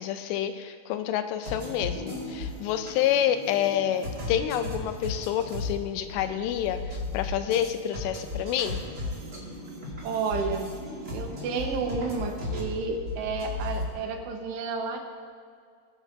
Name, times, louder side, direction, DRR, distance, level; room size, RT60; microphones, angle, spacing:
voice 1, 0.0-8.8, left 10 dB, 90° left, 9 dB, 2.8 m, -28 dB
sound 1, 1.4-13.9, left 2 dB, 40° right, 1.6 m, -36 dB
voice 2, 10.0-10.7 11.1-15.0, right 4 dB, 80° right, 3 dB, 3.2 m, -31 dB
21.5 x 9.1 x 2.6 m, 2.2 s
omnidirectional pair, 4.9 m